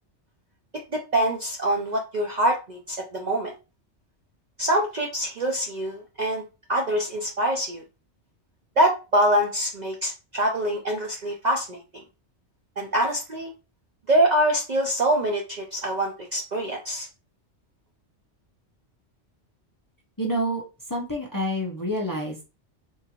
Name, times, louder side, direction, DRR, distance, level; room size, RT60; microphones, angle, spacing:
voice 1, 0.9-3.5 4.6-6.4 6.7-7.8 8.8-12.0 12.8-13.5 14.1-17.1, right 1 dB, 50° right, 1 dB, 0.5 m, -24 dB
voice 2, 20.2-20.6 20.9-22.4, equal, 25° left, -1 dB, 0.6 m, -28 dB
3.6 x 2.5 x 2.9 m, 0.30 s
omnidirectional pair, 1.2 m